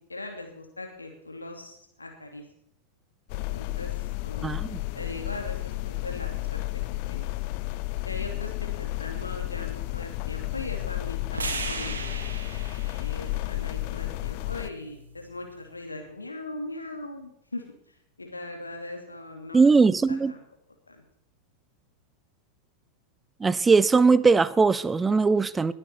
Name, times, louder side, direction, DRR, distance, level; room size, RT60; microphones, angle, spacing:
voice 1, 0.0-2.4 3.3-3.9 4.2-4.6 4.9-6.6 7.1-7.3 8.0-12.1 13.0-20.4 20.9-21.0, left 2 dB, 80° left, 2.7 m, -40 dB
sound 1, 3.3-14.7, left 19 dB, 45° left, 0.5 m, -32 dB
voice 2, 4.4-4.8 19.5-20.3 23.4-25.7, right 4 dB, 15° right, 0.6 m, -20 dB
sound 2, 11.3-15.5, right 4 dB, 70° right, 2.5 m, -38 dB
20.0 x 8.7 x 4.4 m
figure-of-eight pair, 90°, 0 cm